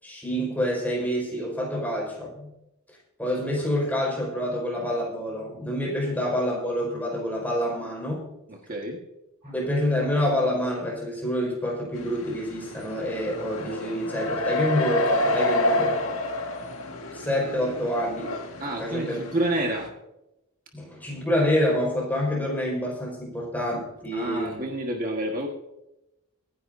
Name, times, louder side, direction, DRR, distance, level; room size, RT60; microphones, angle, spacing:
voice 1, 0.0-2.5 3.2-8.2 9.4-16.0 17.1-18.4 18.8-19.2 20.7-24.6, equal, 10° left, -3 dB, 4.7 m, -27 dB
voice 2, 8.5-9.0 9.4-9.5 18.6-19.9 24.1-25.5, right 1 dB, 40° right, 0 dB, 1.5 m, -29 dB
sound 1, 11.9-19.9, left 1 dB, 65° left, 1.9 m, -29 dB
24.0 x 10.5 x 2.6 m, 0.89 s
head